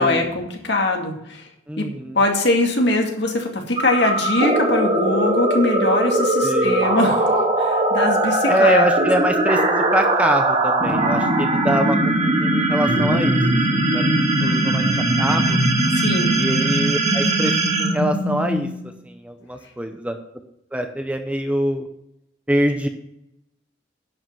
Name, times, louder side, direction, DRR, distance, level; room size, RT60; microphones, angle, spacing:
voice 1, 0.0-1.5 1.8-1.9 2.1-8.8 15.9-16.3, left 2 dB, 60° left, 2 dB, 2.2 m, -22 dB
voice 2, 1.7-2.2 6.4-6.9 8.5-13.4 13.7-14.1 14.4-15.6 16.3-18.7 19.0-20.2 20.7-21.9 22.5-22.9, right 1 dB, 5° right, 6 dB, 0.7 m, -24 dB
sound 1, 3.8-18.9, right 1 dB, 35° right, 1.8 m, -20 dB
11.0 x 5.5 x 7.2 m, 0.81 s
head